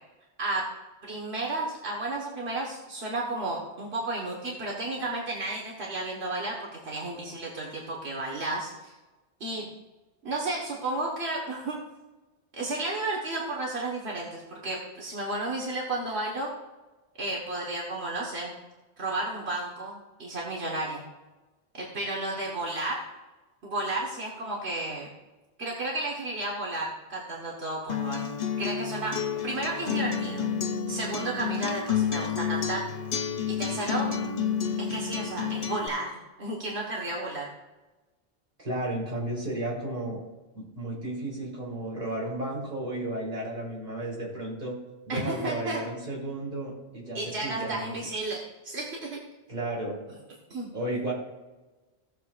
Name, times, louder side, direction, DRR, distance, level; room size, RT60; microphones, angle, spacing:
voice 1, 1.0-8.9 9.4-9.7 10.2-11.8 12.5-16.5 17.2-18.5 19.0-21.0 21.7-23.0 23.6-25.1 25.6-28.3 28.6-29.2 29.4-30.5 30.9-32.8 33.5-34.1 34.8-36.1 36.4-37.5 45.1-45.8 47.1-49.2 50.5-50.7, right 2 dB, 80° right, -3 dB, 1.7 m, -32 dB
Acoustic guitar, 27.9-35.9, left 7 dB, 50° left, 0.7 m, -30 dB
voice 2, 38.6-40.2 40.5-44.8 45.1-47.9 49.5-50.0 50.7-51.1, right 1 dB, 40° right, -5 dB, 3.6 m, -33 dB
17.0 x 7.0 x 2.5 m, 1.1 s
omnidirectional pair, 1.1 m